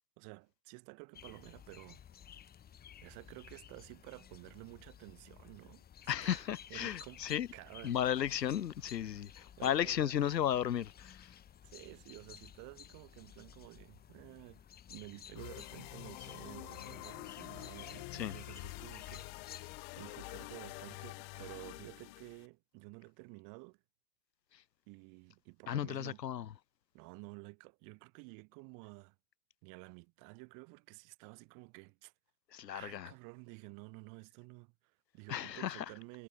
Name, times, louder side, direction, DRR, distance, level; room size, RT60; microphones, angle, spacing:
voice 1, 0.2-2.0 3.0-5.8 6.2-6.4 6.7-8.0 9.6-10.1 11.6-14.6 14.9-23.8 24.9-26.2 26.9-29.2 29.6-32.1 32.7-36.3, right 32 dB, 40° right, 7.2 m, -52 dB
sound 1, 1.1-19.8, left 9 dB, 20° left, 3.6 m, -55 dB
voice 2, 6.1-7.5 7.8-11.4 18.1-18.3 24.5-24.6 25.7-26.5 32.5-33.1 35.3-35.8, left 10 dB, 80° left, 1.5 m, -34 dB
sound 2, 15.3-22.5, left 31 dB, 40° left, 1.5 m, -47 dB
hypercardioid pair, 125°, 49 cm